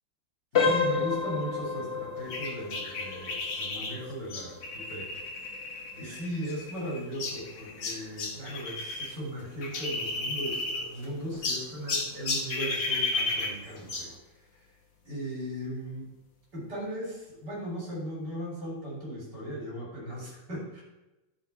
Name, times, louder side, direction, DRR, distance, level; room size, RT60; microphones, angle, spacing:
sound 1, 0.5-11.2 11.6-11.8 12.4-12.5 13.0-13.1, left 5 dB, 40° left, 1.4 m, -34 dB
voice 1, 0.5-5.1 5.9-14.1 14.4-14.7 15.0-16.1 16.5-20.8, equal, 65° right, -5 dB, 4.5 m, -37 dB
sound 2, 2.3-9.1 9.4-11.1 11.4-14.2, left 3 dB, 75° left, 2.0 m, -33 dB
11.5 x 5.2 x 4.5 m, 1.0 s
omnidirectional pair, 1.9 m